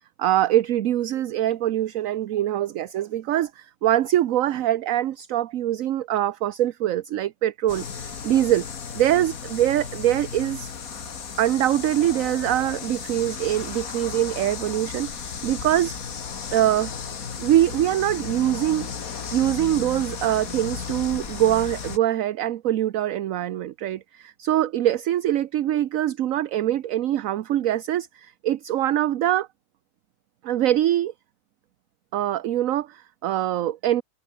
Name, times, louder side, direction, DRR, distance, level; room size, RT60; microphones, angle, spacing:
voice 1, 0.2-8.7 8.9-10.7 11.4-16.0 16.5-16.9 17.4-18.9 19.3-29.5 30.4-31.1 32.1-34.0, right 12 dB, 65° right, 1.1 m, -23 dB
sound 1, 7.7-22.0, left 6 dB, 65° left, 2.1 m, -35 dB
omnidirectional pair, 1.6 m